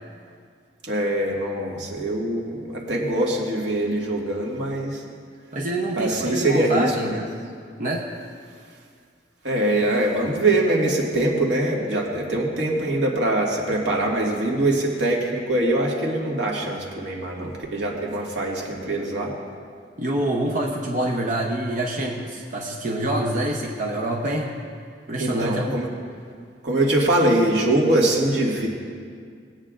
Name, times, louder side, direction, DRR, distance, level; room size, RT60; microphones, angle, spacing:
voice 1, 0.9-5.0 6.0-7.2 9.4-19.3 25.2-25.9 26.6-28.7, right 1 dB, 80° right, -2 dB, 1.9 m, -23 dB
voice 2, 5.5-7.3 7.8-8.1 20.0-24.5 25.1-25.7, right 1 dB, 45° right, -1 dB, 0.8 m, -26 dB
19.5 x 8.8 x 2.5 m, 2.1 s
head